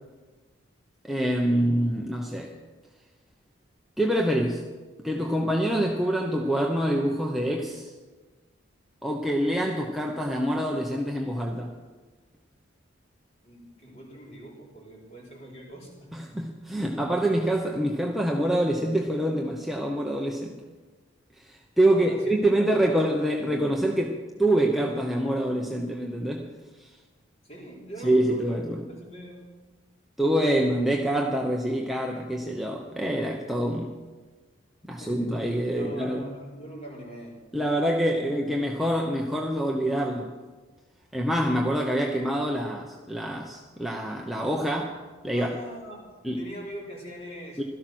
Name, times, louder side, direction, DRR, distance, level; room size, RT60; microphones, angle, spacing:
voice 1, 1.0-2.5 4.0-4.6 5.0-7.9 9.0-11.7 16.1-20.5 21.4-26.5 26.8-26.9 28.0-28.8 30.2-33.9 34.9-36.2 37.5-40.3 41.1-45.6 46.2-46.4 47.6-47.7, right 1 dB, ahead, 0 dB, 0.9 m, -26 dB
voice 2, 13.4-16.2 21.9-22.3 22.6-23.0 27.4-29.4 35.0-35.4 35.8-37.4 45.3-47.6, equal, 30° left, -3 dB, 4.5 m, -43 dB
17.0 x 13.0 x 6.2 m, 1.3 s
head